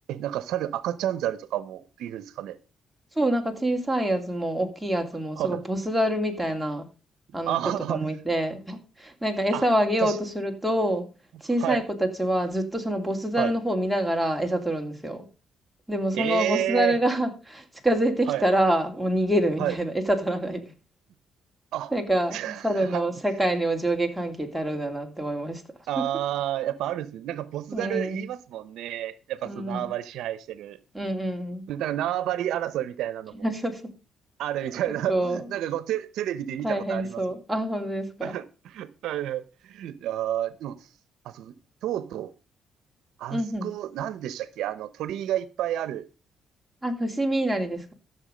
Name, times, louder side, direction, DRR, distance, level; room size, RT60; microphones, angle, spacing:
voice 1, 0.1-2.6 5.4-5.6 7.4-8.1 9.5-9.7 10.0-10.2 11.6-11.8 13.4-13.5 16.1-17.0 18.3-18.4 19.6-19.7 21.7-21.9 22.3-23.0 24.7-24.9 25.9-30.8 31.7-33.5 34.4-37.2 38.2-40.8 41.2-41.5 41.8-42.3 43.2-46.1, right 12 dB, 85° right, 0.8 m, -30 dB
voice 2, 3.2-6.9 7.3-7.6 7.9-11.1 11.4-15.3 15.9-20.6 21.9-25.6 26.0-26.1 27.7-28.3 29.4-29.9 30.9-31.7 33.4-33.8 35.1-35.5 36.6-38.3 43.3-43.7 46.8-47.9, right 1 dB, ahead, 2.7 m, -26 dB
13.5 x 7.2 x 5.1 m
cardioid pair, 90°, 0 cm